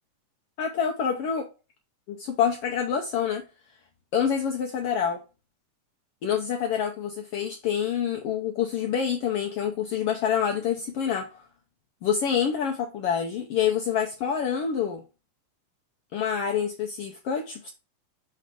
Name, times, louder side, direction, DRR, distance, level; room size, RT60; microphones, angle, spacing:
voice 1, 0.6-1.5 2.1-3.4 4.1-5.2 6.2-11.3 12.0-15.0 16.1-17.7, left 8 dB, 75° left, 1.4 m, -27 dB
6.4 x 3.3 x 5.0 m
omnidirectional pair, 3.4 m